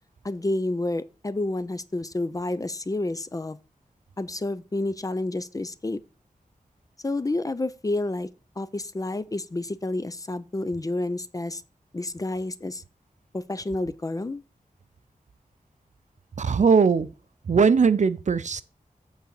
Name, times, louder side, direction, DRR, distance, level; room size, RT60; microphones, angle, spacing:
voice 1, 0.2-3.6 4.2-6.0 7.0-8.3 8.6-11.6 11.9-12.8 13.3-14.4, left 2 dB, 25° left, 0.5 m, -29 dB
voice 2, 16.4-17.1 17.5-18.6, right 5 dB, 55° right, 0.5 m, -20 dB
8.2 x 4.0 x 6.4 m
wide cardioid pair, 105°, 15 cm